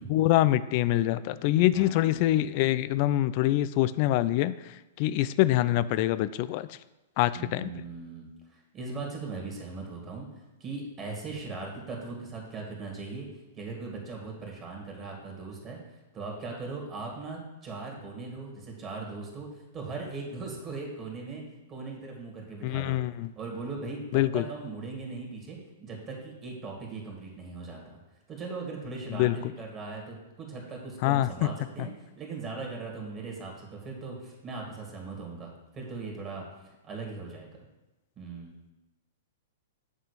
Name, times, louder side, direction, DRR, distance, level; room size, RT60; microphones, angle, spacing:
voice 1, 0.1-4.5 5.0-6.7 7.2-7.7 22.6-23.3 24.1-24.4 29.1-29.4 31.0-31.3, left 15 dB, 45° left, 16 dB, 0.3 m, -25 dB
voice 2, 1.7-2.3 7.3-10.3 10.6-13.3 13.5-15.8 16.1-21.4 21.7-23.0 23.4-28.0 28.3-37.5 38.2-38.5, right 3 dB, 25° right, -1 dB, 2.2 m, -39 dB
8.1 x 3.7 x 6.8 m, 1.0 s
hypercardioid pair, 110°, 0 cm